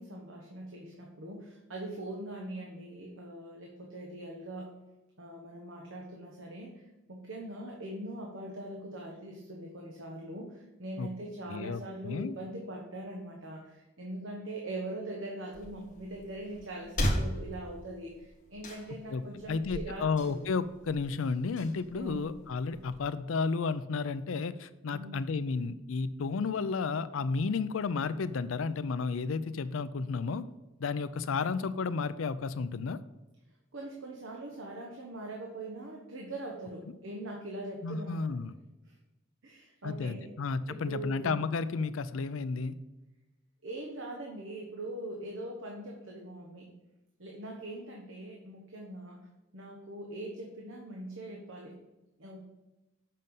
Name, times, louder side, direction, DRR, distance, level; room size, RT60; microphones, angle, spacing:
voice 1, 0.0-4.7 5.2-20.4 21.9-22.3 24.9-25.2 33.7-38.5 38.9-39.0 39.4-40.4 40.7-41.4 43.6-46.7 47.2-49.3 49.5-51.8 52.2-52.5, right 1 dB, 75° right, -1 dB, 1.2 m, -42 dB
voice 2, 11.5-12.3 19.1-30.4 30.8-33.0 37.8-38.5 39.8-42.8, left 4 dB, 80° left, 14 dB, 0.5 m, -32 dB
sound 1, 15.5-23.0, equal, 40° left, 1.4 m, -38 dB
7.5 x 5.4 x 5.4 m, 1.0 s
head